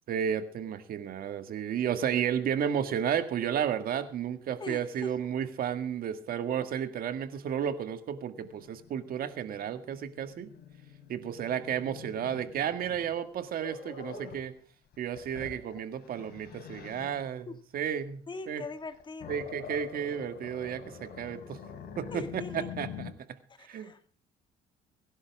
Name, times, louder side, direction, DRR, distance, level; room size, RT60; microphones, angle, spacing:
voice 1, 0.1-10.5 11.1-14.5 15.0-17.5 17.7-18.2 18.5-18.6 19.3-21.6 22.0-23.1 23.6-23.9, right 8 dB, 60° right, 10 dB, 1.8 m, -32 dB
voice 2, 4.6-5.1 12.3-12.4 16.5-16.6 17.5-17.6 18.3-19.3 22.1-22.7 23.5-24.0, left 3 dB, 30° left, 9 dB, 2.1 m, -41 dB
Growling, 8.4-14.5 14.9-17.3 18.7-23.1, left 6 dB, 65° left, 3.8 m, -46 dB
23.5 x 11.5 x 3.5 m, 0.43 s
cardioid pair, 110°, 17 cm